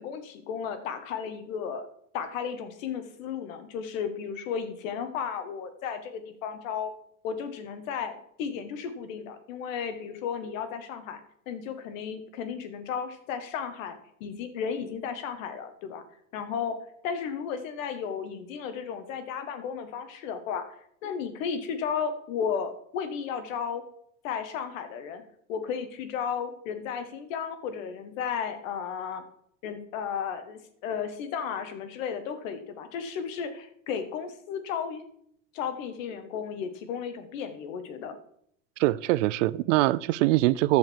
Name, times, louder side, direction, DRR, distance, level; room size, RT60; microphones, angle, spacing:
voice 1, 0.0-1.9 2.1-6.9 7.2-11.2 11.5-16.0 16.3-16.7 17.0-20.6 21.0-23.8 24.2-25.2 25.5-29.2 29.6-35.1 35.5-38.2, left 7 dB, 70° left, 9 dB, 1.7 m, -34 dB
voice 2, 38.8-40.8, right 17 dB, 65° right, 19 dB, 0.6 m, -23 dB
14.0 x 5.3 x 4.6 m, 0.67 s
hypercardioid pair, 90°, 41 cm